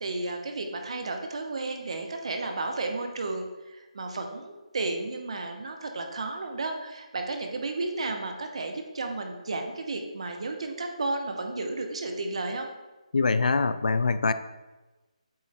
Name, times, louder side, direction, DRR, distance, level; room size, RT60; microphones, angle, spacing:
voice 1, 0.0-12.7, right 2 dB, 50° right, 4 dB, 0.9 m, -33 dB
voice 2, 13.1-14.3, left 4 dB, 80° left, 12 dB, 0.4 m, -24 dB
7.7 x 3.2 x 4.1 m, 1.1 s
hypercardioid pair, 170°, 4 cm